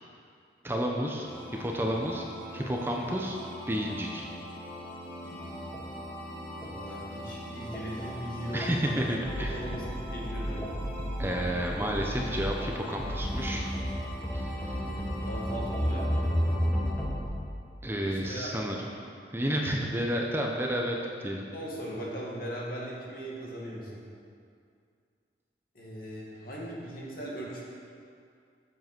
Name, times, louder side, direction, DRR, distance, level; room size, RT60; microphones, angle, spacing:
voice 1, 0.6-1.3 1.6-2.2 2.5-3.4 3.7-4.3 8.5-9.6 11.2-13.7 14.3-14.8 17.8-18.8 19.3-21.5, equal, 15° right, 0 dB, 0.7 m, -31 dB
sound 1, 1.2-17.2, equal, 10° left, 1.5 m, -34 dB
voice 2, 6.6-10.7 14.8-16.3 18.0-18.8 20.3-20.4 21.5-24.0 25.7-27.6, equal, 55° left, -4 dB, 2.1 m, -39 dB
7.6 x 7.6 x 6.0 m, 2.3 s
head